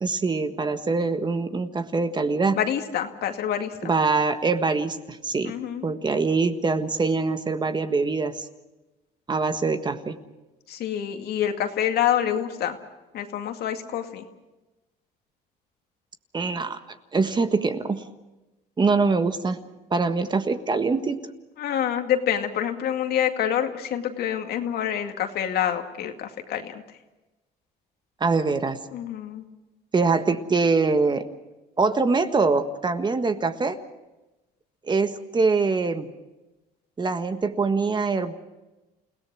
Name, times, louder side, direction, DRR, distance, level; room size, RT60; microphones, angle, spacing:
voice 1, 0.0-2.6 3.8-5.5 5.8-8.4 9.3-10.2 16.3-16.8 17.1-18.0 18.8-19.6 19.9-21.2 28.2-28.8 29.9-31.3 31.8-33.8 34.9-36.1 37.0-38.3, right 4 dB, 25° right, 9 dB, 1.6 m, -23 dB
voice 2, 2.5-3.9 5.4-5.8 10.7-12.8 13.1-14.2 21.6-26.8 28.9-29.4, left 10 dB, 70° left, 5 dB, 2.3 m, -27 dB
29.5 x 17.5 x 6.3 m, 1.0 s
cardioid pair, 110°, 17 cm